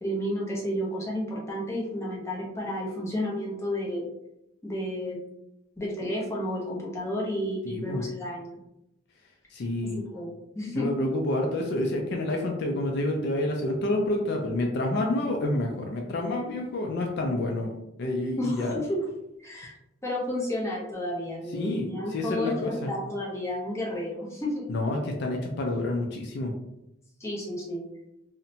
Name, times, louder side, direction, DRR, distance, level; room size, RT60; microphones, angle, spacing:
voice 1, 0.0-4.1 4.6-5.2 5.8-8.6 10.1-10.9 18.4-19.0 19.4-19.7 20.0-24.7 27.2-27.8, left 1 dB, 15° left, -4 dB, 0.6 m, -31 dB
voice 2, 7.6-8.0 9.5-10.0 10.7-17.7 18.0-18.7 21.5-22.9 24.7-26.5, left 1 dB, 60° left, 1 dB, 0.4 m, -28 dB
2.7 x 2.1 x 2.7 m, 0.85 s
head